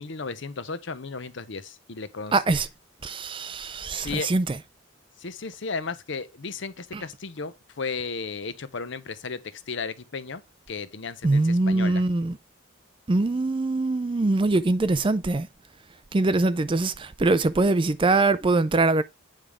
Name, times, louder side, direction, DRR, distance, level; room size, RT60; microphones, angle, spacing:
voice 1, 0.0-2.3 3.9-4.3 5.2-10.4 10.7-12.0, left 4 dB, 60° left, 0.8 m, -34 dB
voice 2, 2.3-2.7 3.0-4.6 6.9-7.0 11.2-12.4 13.1-15.5 16.1-19.0, right 2 dB, 25° right, 0.4 m, -23 dB
9.0 x 3.5 x 5.0 m
head